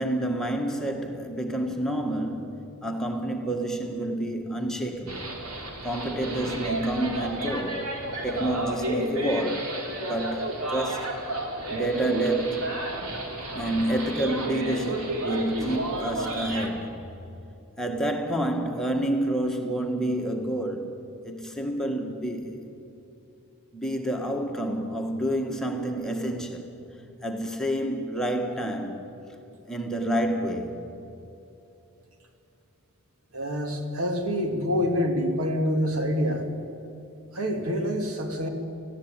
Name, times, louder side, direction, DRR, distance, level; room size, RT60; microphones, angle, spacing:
voice 1, 0.0-5.3 5.8-7.9 8.2-11.1 11.7-12.8 13.5-17.0 17.8-21.0 21.2-22.6 23.7-26.7 27.2-29.1 29.7-30.8, right 1 dB, ahead, 1.8 m, -29 dB
sound 1, 5.1-16.7, right 1 dB, 90° right, 3.6 m, -32 dB
voice 2, 33.3-36.5 37.3-38.5, equal, 70° right, 2.5 m, -26 dB
19.5 x 15.5 x 9.0 m
head